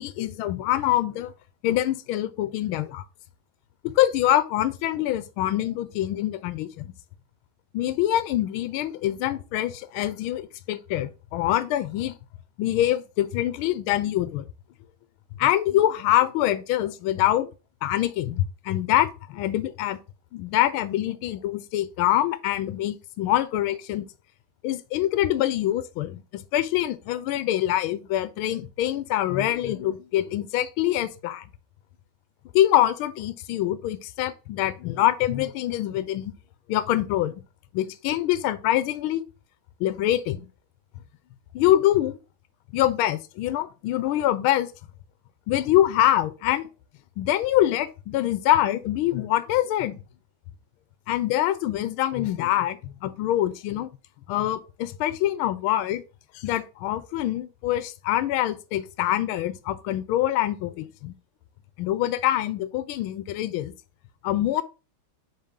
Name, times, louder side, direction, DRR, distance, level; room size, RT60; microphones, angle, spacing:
voice 1, 0.0-1.3 1.6-3.0 3.8-6.9 7.7-12.1 12.6-14.5 15.4-17.5 17.8-20.0 20.3-24.1 24.6-31.4 32.5-36.3 36.7-37.3 37.7-39.2 39.8-40.5 41.5-42.2 42.7-44.7 45.5-46.7 47.2-50.0 51.1-53.9 54.3-56.0 56.3-61.1 61.8-63.7 64.2-64.6, left 13 dB, 80° left, 1.5 m, -25 dB
9.6 x 3.6 x 3.7 m
omnidirectional pair, 2.3 m